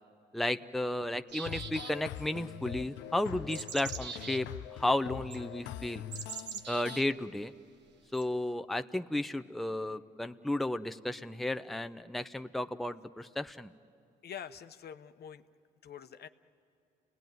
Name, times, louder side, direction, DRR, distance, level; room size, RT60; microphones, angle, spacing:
voice 1, 0.3-6.0 6.7-7.5 8.1-13.7, left 1 dB, ahead, 8 dB, 0.7 m, -33 dB
sound 1, 1.3-2.2 3.2-4.4 5.3-5.4 6.1-7.0 8.1-8.2, right 6 dB, 70° right, 1.3 m, -42 dB
sound 2, 1.5-7.0, left 12 dB, 85° left, 0.6 m, -43 dB
voice 2, 14.2-15.4 15.8-16.3, left 8 dB, 60° left, 10 dB, 0.9 m, -45 dB
29.5 x 18.0 x 9.3 m, 2.5 s
supercardioid pair, 70°, 19 cm